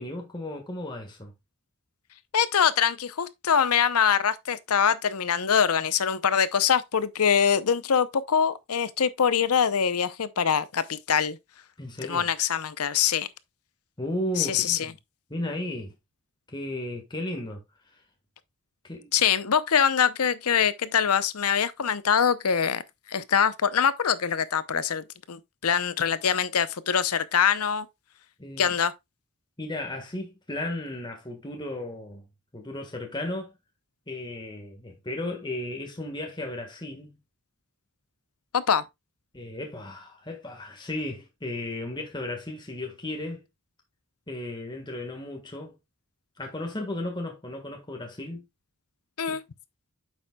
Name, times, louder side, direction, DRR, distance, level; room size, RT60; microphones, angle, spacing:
voice 1, 0.0-1.3 11.8-12.3 14.0-15.0 15.3-15.9 16.5-17.6 18.8-19.1 28.4-28.7 29.6-32.2 32.5-33.5 34.1-37.2 39.3-43.4 44.3-45.7 46.4-48.4 49.3-49.4, left 1 dB, 20° left, 1.5 m, -35 dB
voice 2, 2.3-11.4 12.1-13.3 14.4-14.9 19.1-22.8 23.1-27.9 28.6-28.9 38.5-38.8 49.2-49.4, left 7 dB, 90° left, 0.7 m, -24 dB
9.0 x 6.9 x 2.3 m
head